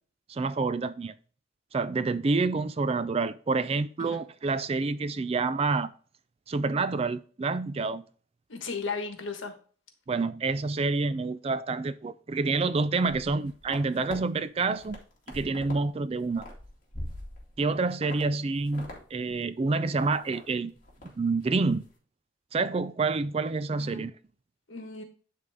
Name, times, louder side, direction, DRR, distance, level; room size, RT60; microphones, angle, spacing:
voice 1, 0.3-1.1 1.7-5.9 6.5-8.0 10.1-15.0 15.3-16.5 17.6-20.7 21.2-21.8 22.5-24.1, right 3 dB, 30° right, 0.3 m, -28 dB
voice 2, 8.5-9.6 23.8-24.1 24.7-25.0, left 4 dB, 75° left, 1.4 m, -35 dB
sound 1, 13.0-14.2 14.6-15.8 16.1-17.6 18.0-18.2 18.5-19.0 19.3-19.4 19.8-20.4 20.8-21.1 21.4-21.7, left 1 dB, 40° left, 2.1 m, -42 dB
10.5 x 3.7 x 3.5 m
head